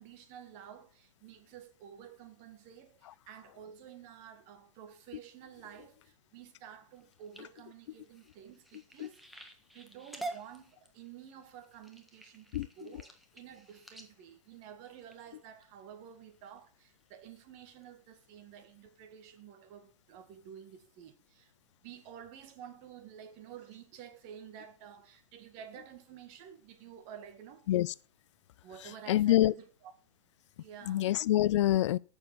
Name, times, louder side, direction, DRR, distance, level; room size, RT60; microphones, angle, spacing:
voice 1, 0.0-9.5 9.7-21.5 21.8-27.7 28.6-29.9 30.6-31.1, right 9 dB, 40° right, 1.9 m, -51 dB
sound 1, 6.9-15.6 16.2-16.6 17.0-17.4 17.8-17.9 18.2-18.3, right 2 dB, ahead, 1.5 m, -48 dB
voice 2, 29.1-29.5 30.9-32.0, left 14 dB, 65° left, 0.4 m, -26 dB
8.3 x 7.0 x 6.9 m
hypercardioid pair, 120°, 17 cm